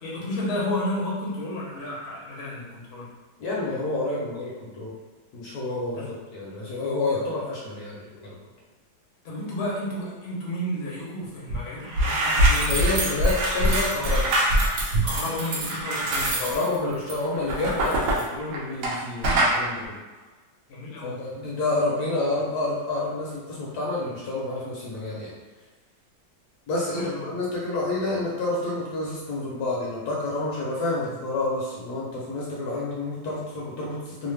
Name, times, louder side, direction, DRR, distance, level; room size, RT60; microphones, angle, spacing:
voice 1, 0.0-3.1 6.0-6.1 9.2-12.8 15.0-16.6 20.7-21.1 27.0-27.2, left 1 dB, 50° left, -5 dB, 0.8 m, -32 dB
voice 2, 3.4-4.9 5.3-8.4 12.5-14.3 16.4-20.0 21.0-25.3 26.7-34.3, left 2 dB, 70° left, -5 dB, 1.1 m, -29 dB
sound 1, 11.5-11.6 11.8-19.0 19.2-19.6, right 1 dB, 65° right, 0.8 m, -23 dB
3.1 x 2.0 x 3.2 m, 1.3 s
omnidirectional pair, 1.9 m